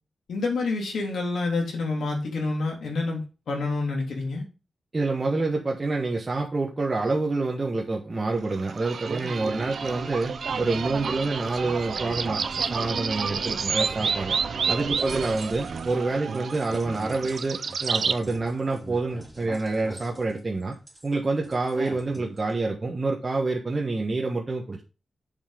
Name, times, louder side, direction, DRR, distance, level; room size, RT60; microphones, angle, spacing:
voice 1, 0.3-4.4, left 3 dB, 90° left, 1 dB, 3.2 m, -28 dB
voice 2, 4.9-14.3 14.7-20.8 21.0-24.8, right 3 dB, 30° right, 0 dB, 1.3 m, -27 dB
sound 1, 8.5-18.2, right 5 dB, 65° right, 0.7 m, -30 dB
sound 2, 15.0-16.0 16.3-21.1 21.4-22.5, right 1 dB, 15° right, 3.2 m, -42 dB
7.2 x 5.7 x 5.0 m, 0.32 s
wide cardioid pair, 115°, 0 cm